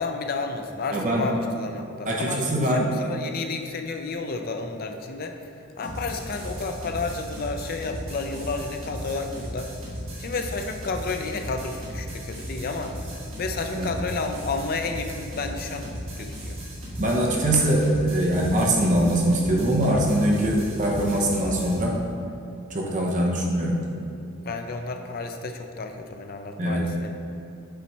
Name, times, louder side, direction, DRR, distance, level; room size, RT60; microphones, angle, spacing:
voice 1, 0.0-9.7 10.2-12.9 13.4-15.9 16.2-16.6 23.3-23.4 24.4-27.1, left 3 dB, 45° left, 5 dB, 0.5 m, -31 dB
voice 2, 0.9-1.3 2.1-2.9 13.7-13.9 17.0-22.0 22.7-23.8 26.6-26.9, right 1 dB, 35° right, -2 dB, 0.8 m, -22 dB
sound 1, 5.8-21.8, equal, 70° right, 1.6 m, -36 dB
7.0 x 4.1 x 4.5 m, 2.5 s
head